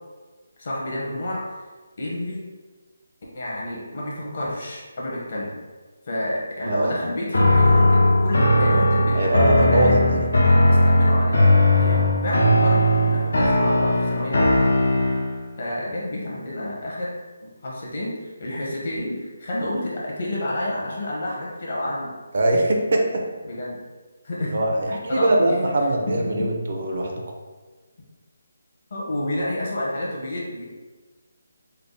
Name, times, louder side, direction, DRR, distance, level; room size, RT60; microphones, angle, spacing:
voice 1, 0.6-1.5 2.0-2.5 3.3-5.6 6.0-10.1 10.4-14.7 15.1-15.2 15.6-17.1 17.4-22.1 23.4-23.8 24.2-24.6 24.9-25.5 26.1-26.5 28.9-30.6, left 1 dB, 45° left, -5 dB, 0.9 m, -29 dB
voice 2, 6.7-7.0 9.1-10.3 22.3-23.3 24.4-27.3, right 1 dB, 50° right, 1 dB, 0.5 m, -22 dB
sound 1, 7.3-15.4, left 1 dB, 90° left, 0.7 m, -18 dB
3.3 x 2.0 x 3.8 m, 1.3 s
hypercardioid pair, 170°, 0 cm